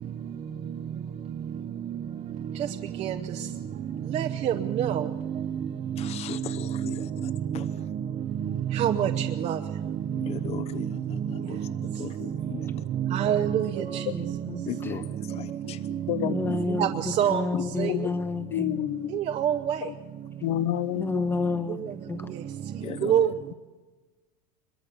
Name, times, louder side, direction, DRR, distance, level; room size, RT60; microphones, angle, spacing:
voice 1, 4.1-4.9 8.8-9.1 9.4-9.5 13.1-13.6 16.8-16.9 17.2-17.4 19.4-19.5 23.1-23.3, right 10 dB, 30° right, 5 dB, 0.8 m, -23 dB
voice 2, 6.0-7.7 10.1-12.7 14.7-15.8 16.5-16.6 22.8-23.3, left 9 dB, 30° left, 14 dB, 0.9 m, -38 dB
voice 3, 13.8-14.6 16.2-18.8 20.9-21.8 22.1-22.3, left 3 dB, 10° left, 11 dB, 1.2 m, -30 dB
voice 4, 17.5-18.1 18.5-19.1 19.8-19.9 20.4-21.4, left 13 dB, 55° left, 14 dB, 1.1 m, -29 dB
24.0 x 22.0 x 6.8 m, 1.3 s
supercardioid pair, 150°, 21 cm